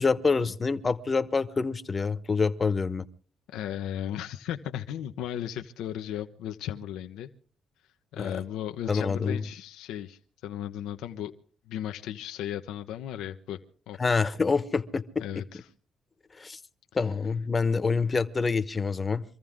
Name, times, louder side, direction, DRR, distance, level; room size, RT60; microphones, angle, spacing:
voice 1, 0.0-3.0 8.2-8.3 8.9-9.4 14.0-15.2 16.4-16.6 16.9-19.2, left 4 dB, 30° left, 1.1 m, -26 dB
voice 2, 3.5-7.3 8.1-11.3 11.7-13.6 13.9-14.0 15.2-15.6, left 11 dB, 90° left, 0.9 m, -35 dB
25.5 x 14.5 x 3.7 m
cardioid pair, 90°, 0 cm